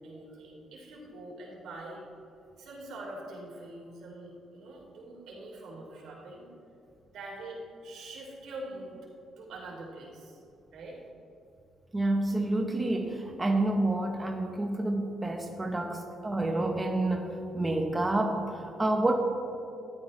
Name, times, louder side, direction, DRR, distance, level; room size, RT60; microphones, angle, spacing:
voice 1, 0.0-2.0 2.6-6.4 7.1-9.0 9.4-10.4 10.7-11.0, right 1 dB, 75° right, -3 dB, 3.0 m, -44 dB
voice 2, 11.9-17.3 17.5-19.1, right 2 dB, 15° right, 2 dB, 0.9 m, -28 dB
13.5 x 11.0 x 3.2 m, 2.7 s
cardioid pair, 90°, 0 cm